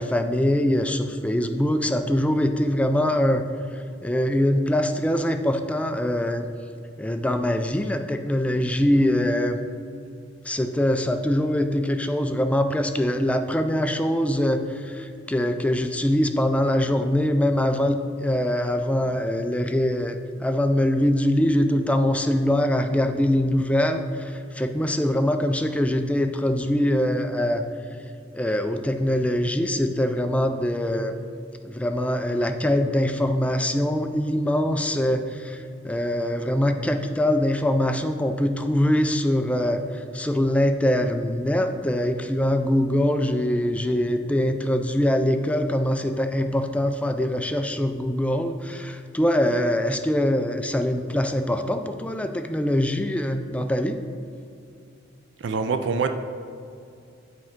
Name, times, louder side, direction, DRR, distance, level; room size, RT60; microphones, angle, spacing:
voice 1, 0.0-3.4 4.0-6.5 7.0-9.6 10.5-27.7 28.3-31.1 31.6-54.0, left 1 dB, 5° left, 7 dB, 0.3 m, -23 dB
voice 2, 55.4-56.1, right 5 dB, 70° right, 8 dB, 0.4 m, -24 dB
7.7 x 4.5 x 3.6 m, 2.5 s
head